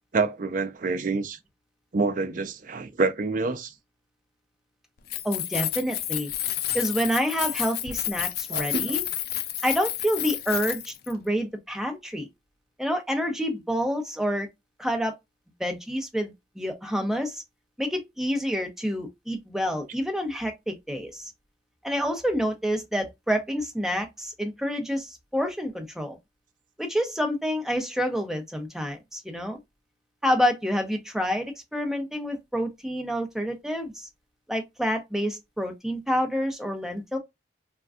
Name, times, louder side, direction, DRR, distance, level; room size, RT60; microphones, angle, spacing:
voice 1, 0.1-1.4 1.9-3.7 8.5-9.0, right 3 dB, 45° right, 0.4 m, -27 dB
Keys jangling, 5.0-11.1, left 12 dB, 50° left, 0.4 m, -30 dB
voice 2, 5.2-6.3 6.7-9.0 9.6-12.3 12.8-14.5 14.8-15.1 15.6-17.4 17.8-21.3 21.8-26.2 26.8-29.6 30.2-34.1 34.5-37.2, equal, ahead, 0.6 m, -28 dB
3.4 x 2.2 x 2.3 m
head